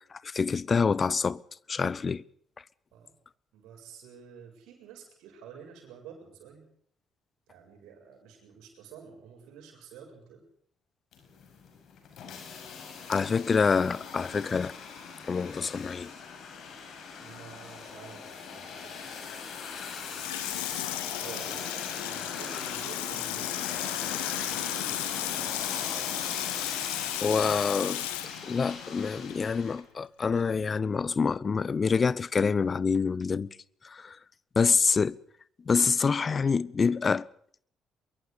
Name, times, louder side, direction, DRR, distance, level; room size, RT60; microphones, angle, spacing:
voice 1, 0.0-1.4 1.7-2.2 13.1-14.7 15.3-16.1 27.2-28.0 28.4-33.5 33.8-34.2 34.6-35.2 35.7-37.2, left 5 dB, 35° left, 0.8 m, -26 dB
voice 2, 3.5-6.7 7.5-10.5 16.9-19.2 20.4-25.4, right 7 dB, 65° right, 7.4 m, -50 dB
sound 1, 11.1-29.8, left 6 dB, 55° left, 6.1 m, -39 dB
Water tap faucet / Sink (filling or washing), 19.8-29.5 29.8-29.9, left 15 dB, 75° left, 1.5 m, -35 dB
24.5 x 23.0 x 5.2 m
figure-of-eight pair, 45°, 0 cm